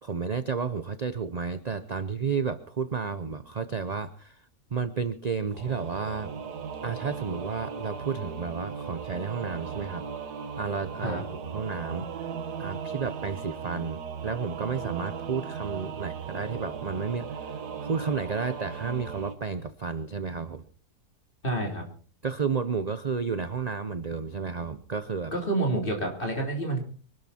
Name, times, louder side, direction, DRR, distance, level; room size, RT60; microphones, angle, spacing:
voice 1, 0.0-4.4 4.7-6.3 6.8-10.0 10.6-11.2 11.5-12.1 12.6-20.6 22.2-25.3, right 5 dB, 40° right, 11 dB, 0.6 m, -32 dB
Singing / Musical instrument, 5.5-19.3, right 6 dB, 75° right, 1.8 m, -37 dB
voice 2, 21.4-21.8 25.3-26.8, right 2 dB, 30° left, 2 dB, 3.9 m, -28 dB
24.0 x 12.5 x 4.3 m, 0.41 s
omnidirectional pair, 1.7 m